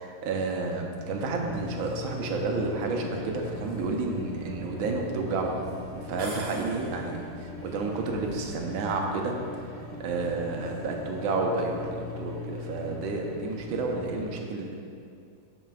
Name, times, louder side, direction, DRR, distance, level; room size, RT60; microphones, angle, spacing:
voice 1, 0.0-5.6 5.9-9.3 10.0-14.8, right 3 dB, 85° right, 2 dB, 1.6 m, -30 dB
sound 1, 1.0-14.2, left 2 dB, 40° left, 2.1 m, -40 dB
sound 2, 6.2-7.3, right 1 dB, 45° right, 0.5 m, -42 dB
13.0 x 5.0 x 2.4 m, 2.4 s
omnidirectional pair, 2.2 m